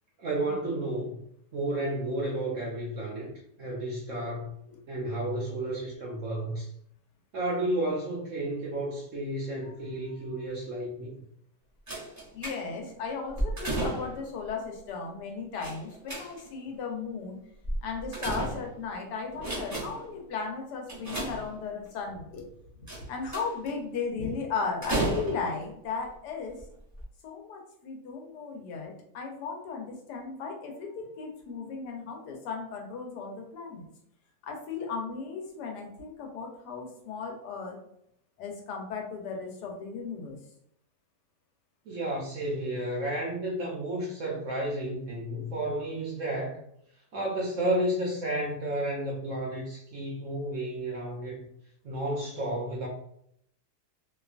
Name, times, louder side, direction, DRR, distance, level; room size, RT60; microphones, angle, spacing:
voice 1, 0.2-1.2 1.5-3.3 3.6-4.5 4.9-6.7 7.3-11.1 41.9-46.6 47.1-51.5 51.8-52.9, right 1 dB, 70° right, -3 dB, 0.7 m, -32 dB
sound 1, 11.9-12.9 13.3-14.3 15.6-16.6 17.6-18.9 19.3-20.1 20.9-21.9 22.9-23.7 24.8-25.7 26.5-26.6 26.9-27.0, right 1 dB, 20° right, 0.5 m, -33 dB
voice 2, 12.3-17.4 17.8-22.5 22.8-26.6 27.2-33.8 34.4-37.8 38.4-40.4, left 5 dB, 80° left, 1 dB, 1.3 m, -36 dB
2.8 x 2.3 x 2.4 m, 0.72 s
omnidirectional pair, 1.8 m